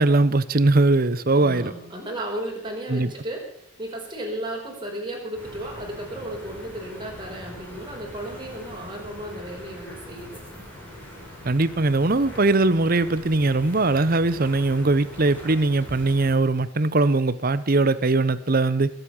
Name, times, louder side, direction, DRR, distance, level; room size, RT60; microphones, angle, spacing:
voice 1, 0.0-1.7 2.9-3.1 11.4-18.9, right 2 dB, 45° right, 16 dB, 0.8 m, -20 dB
voice 2, 1.3-3.4 3.8-10.7, right 1 dB, 25° right, -1 dB, 4.7 m, -34 dB
sound 1, 5.3-16.3, left 1 dB, 10° left, 5.4 m, -42 dB
22.0 x 8.2 x 7.1 m, 0.69 s
head